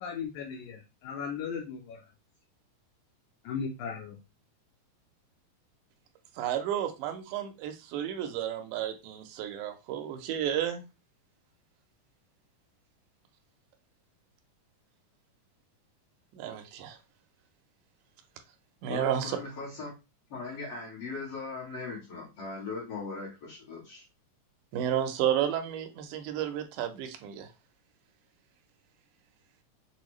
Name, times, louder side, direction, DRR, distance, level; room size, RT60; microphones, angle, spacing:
voice 1, 0.0-2.0 3.4-4.2, left 6 dB, 80° left, 1.8 m, -37 dB
voice 2, 6.4-10.8 16.3-17.0 18.8-19.4 24.7-27.5, right 10 dB, 80° right, 2.0 m, -32 dB
voice 3, 18.9-19.9 20.3-24.0, left 3 dB, 55° left, 2.0 m, -39 dB
6.1 x 2.2 x 3.0 m
omnidirectional pair, 3.7 m